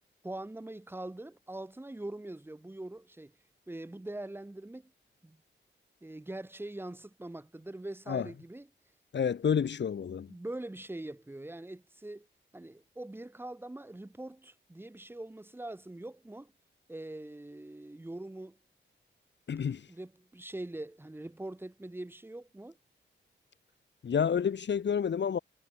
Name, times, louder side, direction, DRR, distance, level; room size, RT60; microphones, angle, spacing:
voice 1, 0.2-3.3 3.7-4.9 5.2-5.4 6.0-8.7 10.3-12.3 12.5-16.5 16.9-18.6 19.7-22.8, right 1 dB, 10° right, 4.3 m, -43 dB
voice 2, 9.1-10.3 19.5-19.8 24.0-25.4, left 7 dB, 60° left, 2.9 m, -29 dB
wide cardioid pair, 180°, 20 cm